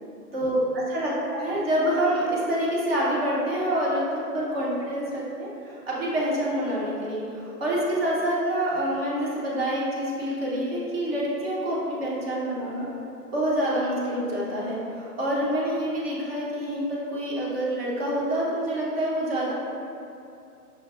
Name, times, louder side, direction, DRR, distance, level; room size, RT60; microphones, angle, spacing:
voice 1, 0.3-12.9 13.3-19.5, right 1 dB, 40° right, -5 dB, 0.8 m, -27 dB
5.8 x 2.2 x 2.3 m, 2.6 s
hypercardioid pair, 150°, 48 cm